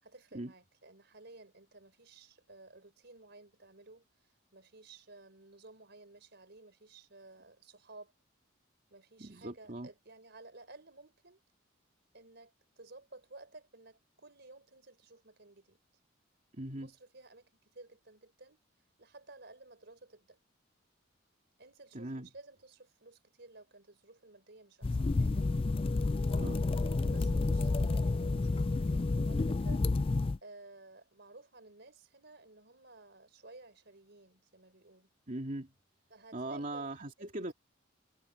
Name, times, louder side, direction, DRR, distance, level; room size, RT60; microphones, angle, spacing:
voice 1, 0.0-8.1 8.9-11.4 12.1-15.8 16.8-18.6 19.0-20.4 21.6-25.5 26.3-35.1 36.1-37.5, right 2 dB, 60° right, 4.9 m, -55 dB
voice 2, 9.2-9.9 16.5-16.9 21.9-22.3 26.4-26.6 35.3-35.7 36.3-37.5, right 1 dB, 40° right, 2.6 m, -40 dB
sound 1, 24.8-30.4, left 3 dB, 30° left, 0.4 m, -30 dB
head